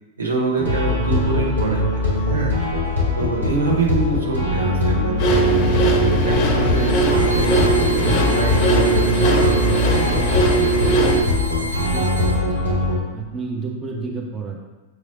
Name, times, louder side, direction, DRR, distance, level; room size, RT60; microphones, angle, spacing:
voice 1, 0.2-2.5 3.2-5.8 6.2-9.8, right 4 dB, 70° right, 0 dB, 0.8 m, -26 dB
sound 1, 0.6-13.0, left 2 dB, 85° right, 1.4 m, -21 dB
sound 2, 5.2-11.2, right 3 dB, 40° left, 0.6 m, -19 dB
sound 3, 6.6-12.3, equal, 90° left, 0.5 m, -33 dB
voice 2, 11.6-12.7 13.1-14.6, right 4 dB, 25° right, 1 dB, 0.6 m, -31 dB
6.4 x 3.1 x 2.7 m, 1.1 s
figure-of-eight pair, 95°, 0 cm